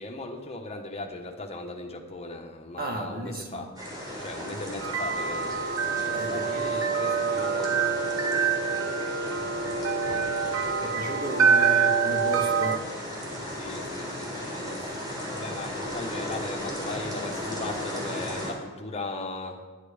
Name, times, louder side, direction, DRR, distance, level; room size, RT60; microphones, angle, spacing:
voice 1, 0.0-3.7 4.2-5.6 6.0-8.3 10.0-11.5 13.6-15.0 15.3-19.6, left 2 dB, 30° left, 1 dB, 1.3 m, -38 dB
voice 2, 2.8-3.7 6.1-6.8 10.8-12.8, right 1 dB, 45° right, 2 dB, 1.6 m, -35 dB
sound 1, 3.8-18.5, left 1 dB, 20° right, 3.6 m, -36 dB
sound 2, 4.2-12.8, right 6 dB, 85° right, 1.0 m, -26 dB
11.0 x 10.5 x 5.1 m, 1.3 s
head